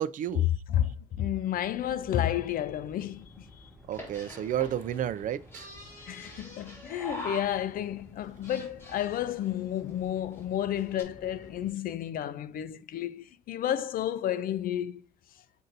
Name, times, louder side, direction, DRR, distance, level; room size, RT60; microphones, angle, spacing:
voice 1, 0.0-0.5 3.9-5.7, right 10 dB, 50° right, 0.4 m, -31 dB
voice 2, 0.7-3.7 6.1-15.0, left 11 dB, 60° left, 0.5 m, -31 dB
sound 1, 1.6-11.7, left 1 dB, ahead, 1.5 m, -53 dB
sound 2, 3.9-7.9 8.2-9.5 10.0-10.1 10.3-10.4 10.7-11.0, left 1 dB, 15° left, 2.6 m, -44 dB
7.4 x 2.6 x 2.6 m
cardioid pair, 110°, 17 cm